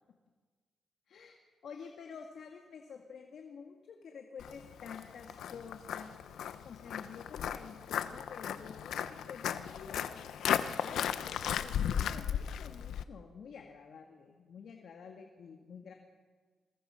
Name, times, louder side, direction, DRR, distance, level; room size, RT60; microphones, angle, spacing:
voice 1, 1.6-6.1 6.6-10.2 10.8-15.9, left 6 dB, 60° left, 3 dB, 2.0 m, -49 dB
Walk footsteps, 4.4-13.0, left 9 dB, 85° left, 0.9 m, -36 dB
28.0 x 21.5 x 5.8 m, 1.5 s
wide cardioid pair, 145°, 0 cm